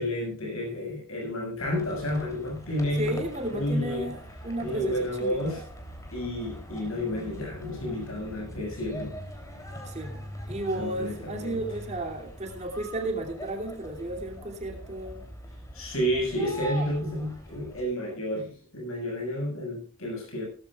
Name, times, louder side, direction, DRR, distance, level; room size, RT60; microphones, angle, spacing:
voice 1, 0.0-3.2 3.5-4.1 4.6-5.6 6.1-9.1 10.8-11.6 15.7-20.5, equal, 75° left, 0 dB, 6.3 m, -31 dB
sound 1, 1.6-17.8, equal, 15° left, 3.2 m, -43 dB
voice 2, 3.0-5.6 9.8-10.2 10.5-15.2, right 1 dB, 30° right, 2 dB, 2.8 m, -33 dB
17.5 x 15.0 x 2.4 m, 0.38 s
head